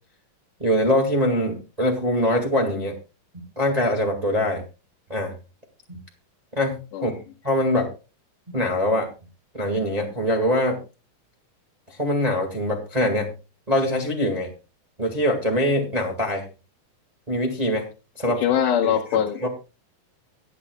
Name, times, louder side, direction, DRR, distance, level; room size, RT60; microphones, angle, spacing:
voice 1, 0.6-2.9 3.5-4.6 5.1-5.3 5.9-6.0 6.5-7.1 7.4-7.9 8.5-9.1 9.5-10.8 11.9-13.3 13.7-14.5 15.0-16.4 17.3-17.9 18.1-18.4 18.8-19.5, equal, 15° right, 1 dB, 1.4 m, -23 dB
voice 2, 18.4-19.5, left 9 dB, 75° left, 1 dB, 2.4 m, -22 dB
24.0 x 8.1 x 2.3 m, 0.31 s
omnidirectional pair, 3.9 m